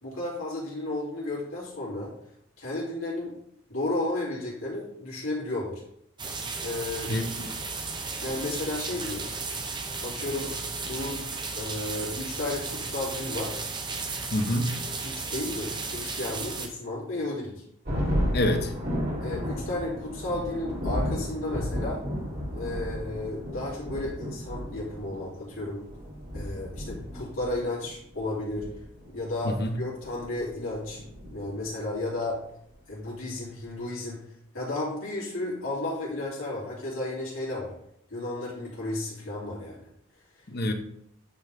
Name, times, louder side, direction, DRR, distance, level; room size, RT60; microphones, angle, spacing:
voice 1, 0.0-2.1 2.6-3.4 3.7-5.7 6.6-7.1 8.2-9.3 10.0-10.5 10.8-11.2 11.5-13.6 15.0-17.6 19.2-22.0 22.5-25.8 26.3-28.7 29.1-31.0 31.3-32.4 32.9-34.2 34.5-37.7 38.1-39.9, left 2 dB, 75° left, -6 dB, 2.9 m, -33 dB
sound 1, 6.2-16.7, right 4 dB, 20° right, 0.7 m, -34 dB
voice 2, 7.1-7.5 14.3-14.7 18.3-18.7 29.4-29.8 40.5-40.7, left 1 dB, 50° left, 5 dB, 0.8 m, -26 dB
Thunder, 17.8-31.8, equal, 45° right, 2.1 m, -33 dB
9.5 x 3.6 x 3.8 m, 0.74 s
head